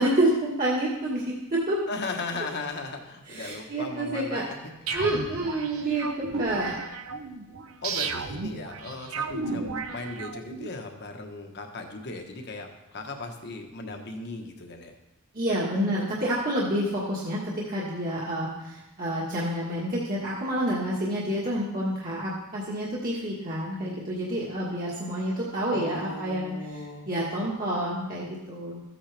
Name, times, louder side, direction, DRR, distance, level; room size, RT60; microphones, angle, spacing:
voice 1, 0.0-1.8 3.3-4.4 4.9-6.8 15.3-28.8, right 1 dB, 40° right, -6 dB, 1.6 m, -28 dB
voice 2, 1.9-4.7 5.8-6.0 7.8-14.9 25.7-27.1, left 3 dB, 50° left, 3 dB, 1.3 m, -37 dB
sound 1, 4.9-10.7, right 4 dB, 75° right, 0.8 m, -34 dB
14.5 x 8.7 x 3.5 m, 0.97 s
head